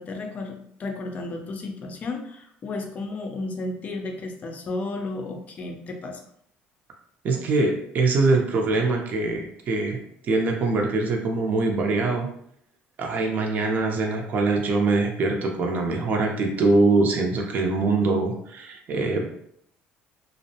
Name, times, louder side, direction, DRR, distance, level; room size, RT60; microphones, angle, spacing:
voice 1, 0.0-6.2, left 2 dB, 35° left, 3 dB, 0.5 m, -33 dB
voice 2, 7.2-10.0 10.2-12.3 13.0-19.2, right 3 dB, 45° right, 1 dB, 0.6 m, -23 dB
2.5 x 2.0 x 2.7 m, 0.68 s
cardioid pair, 120°, 4 cm